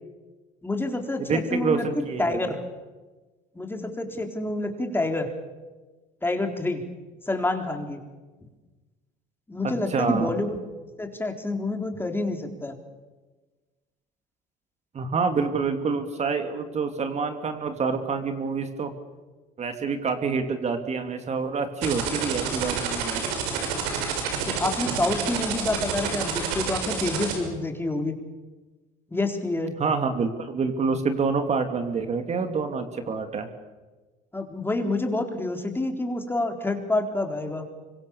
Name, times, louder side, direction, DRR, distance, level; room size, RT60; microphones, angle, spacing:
voice 1, 0.6-2.6 3.5-5.3 6.2-6.8 7.2-8.0 9.5-10.6 11.0-12.7 24.4-28.2 29.1-29.7 34.3-37.7, left 2 dB, 10° left, 4 dB, 3.9 m, -28 dB
voice 2, 1.2-2.4 9.9-10.3 14.9-18.9 19.6-23.2 29.8-33.5, right 5 dB, 40° right, 7 dB, 2.9 m, -27 dB
sound 1, 21.8-27.3, right 8 dB, 85° right, 6.5 m, -28 dB
25.5 x 24.0 x 7.2 m, 1.3 s
supercardioid pair, 90°, 17 cm